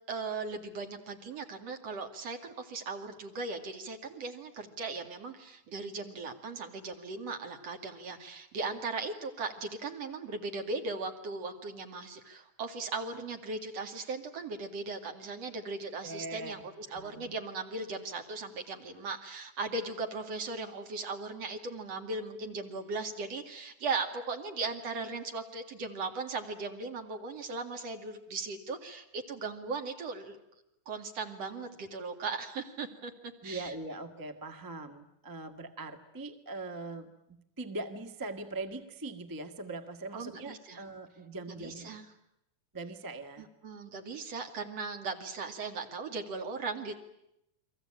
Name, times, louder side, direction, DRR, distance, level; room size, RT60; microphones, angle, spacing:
voice 1, 0.1-30.4 30.9-33.7 40.1-40.8 41.5-42.0 43.4-47.0, right 3 dB, 55° right, 5 dB, 3.3 m, -38 dB
voice 2, 16.0-16.6 16.9-17.3 33.4-42.0 42.7-43.5, right 2 dB, 10° right, 6 dB, 1.0 m, -41 dB
29.5 x 22.5 x 8.9 m, 0.81 s
omnidirectional pair, 3.5 m